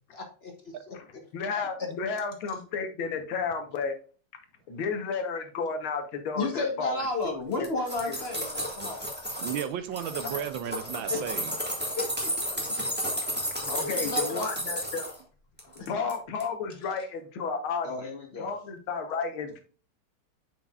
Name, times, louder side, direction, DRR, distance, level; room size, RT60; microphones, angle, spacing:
voice 1, 0.1-0.9 1.8-1.9 6.4-9.0 11.1-11.4 11.8-12.3 13.8-14.8 15.8-15.9 17.8-18.5, left 2 dB, 40° left, 2 dB, 0.9 m, -33 dB
voice 2, 1.3-3.9 4.7-7.0 8.0-8.2 13.6-15.1 15.7-18.1 18.4-19.6, left 5 dB, 75° left, 7 dB, 1.8 m, -32 dB
sound 1, 7.5-9.7 10.0-15.2 15.6-16.1 16.4-16.5, equal, 5° right, 1.4 m, -32 dB
voice 3, 9.4-11.6, right 10 dB, 75° right, 11 dB, 1.3 m, -34 dB
7.3 x 5.8 x 2.3 m, 0.39 s
omnidirectional pair, 2.3 m